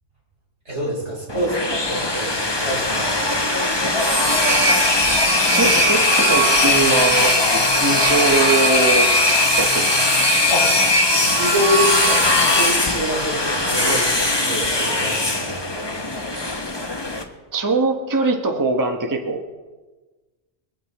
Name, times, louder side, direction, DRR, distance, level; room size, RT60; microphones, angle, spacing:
voice 1, 0.7-3.5 10.5-10.8 11.1-12.3 12.5-15.9, equal, 80° right, -5 dB, 6.1 m, -26 dB
sound 1, 1.3-17.2, left 1 dB, 25° left, 1.1 m, -19 dB
voice 2, 5.5-9.1 9.6-10.1 13.8-14.1 17.5-19.6, right 3 dB, 20° right, 3 dB, 1.0 m, -22 dB
23.0 x 8.9 x 4.1 m, 1.2 s
omnidirectional pair, 1.2 m